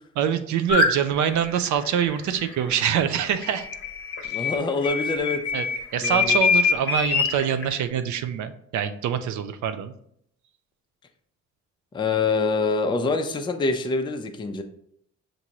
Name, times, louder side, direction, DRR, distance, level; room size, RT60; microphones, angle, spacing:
voice 1, 0.2-3.7 4.2-4.5 5.5-5.7 5.9-9.9, right 8 dB, 70° right, 10 dB, 0.5 m, -25 dB
sound 1, 0.7-0.9 1.6-4.6 4.8-7.7, left 4 dB, 45° left, 1.0 m, -24 dB
voice 2, 4.3-5.4 6.0-6.4 11.9-14.6, left 4 dB, 15° left, 5 dB, 0.4 m, -25 dB
5.9 x 2.6 x 2.9 m, 0.70 s
cardioid pair, 90°, 30 cm